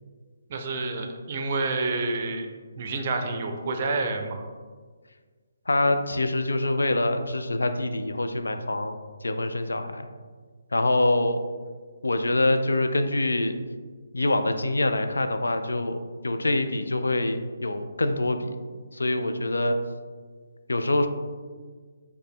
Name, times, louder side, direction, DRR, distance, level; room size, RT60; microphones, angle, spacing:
voice 1, 0.5-2.5 2.7-4.4, right 3 dB, 45° right, 4 dB, 0.5 m, -28 dB
voice 2, 5.7-9.0 9.2-10.1 10.7-11.5 12.0-13.5 14.1-18.5 18.9-19.8 20.7-21.1, left 2 dB, 80° left, 8 dB, 0.3 m, -25 dB
4.5 x 2.1 x 3.5 m, 1.5 s
figure-of-eight pair, 145°, 0 cm